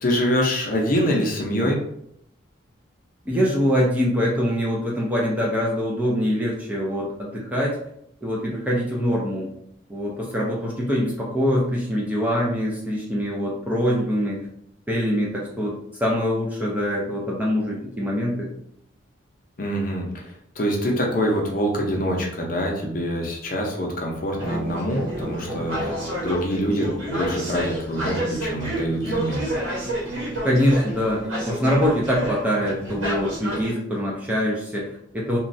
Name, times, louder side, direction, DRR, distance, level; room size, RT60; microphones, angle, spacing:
voice 1, 0.0-1.8 19.6-29.5, equal, 45° left, 0 dB, 0.6 m, -25 dB
voice 2, 3.3-7.7 8.2-9.5 9.9-14.4 14.9-18.5 30.4-35.4, equal, 10° right, -4 dB, 0.4 m, -24 dB
sound 1, 24.4-33.7, right 1 dB, 90° right, 1.1 m, -29 dB
3.0 x 2.2 x 2.6 m, 0.73 s
head